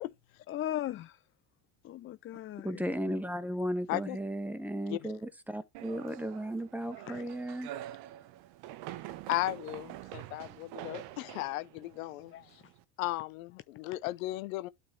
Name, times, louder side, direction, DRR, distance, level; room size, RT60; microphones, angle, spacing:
voice 1, 0.5-1.2 1.8-3.2 7.1-7.2 12.3-12.7, left 13 dB, 35° left, 0.4 m, -39 dB
voice 2, 2.6-7.7, equal, 5° right, 1.5 m, -35 dB
sound 1, 5.7-12.8, right 14 dB, 65° right, 1.1 m, -46 dB
voice 3, 9.3-12.3 13.0-14.7, left 18 dB, 85° left, 0.7 m, -35 dB
12.0 x 4.2 x 3.2 m
supercardioid pair, 85°, 40 cm